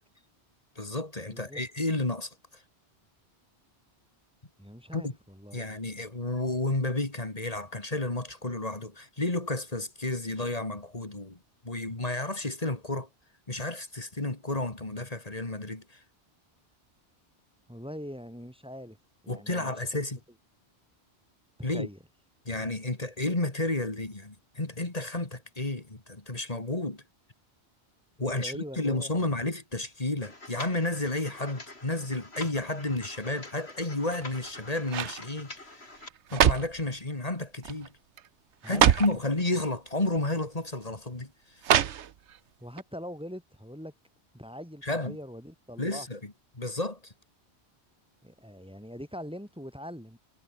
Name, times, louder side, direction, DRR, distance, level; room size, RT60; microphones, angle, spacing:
voice 1, 0.8-2.3 4.9-5.1 5.5-11.4 11.6-13.1 13.5-16.0 19.3-20.2 21.6-21.9 22.5-27.0 28.2-35.9 36.3-37.9 38.7-41.3 44.8-45.2 45.8-47.1, left 2 dB, 35° left, 2.6 m, -31 dB
voice 2, 1.3-1.6 4.6-5.6 17.7-19.0 19.2-20.0 21.6-22.0 28.2-29.3 38.6-38.9 42.6-43.9 44.3-46.1 48.2-50.2, equal, 5° right, 4.8 m, -42 dB
sound 1, 30.2-36.1, left 2 dB, 70° left, 4.9 m, -46 dB
sound 2, 34.0-34.5 34.9-35.2 36.0-36.8 37.6-37.9 38.2-38.3 38.6-39.2 40.2-40.3 41.6-42.4 42.8-42.9, right 9 dB, 85° right, 1.1 m, -25 dB
omnidirectional pair, 1.1 m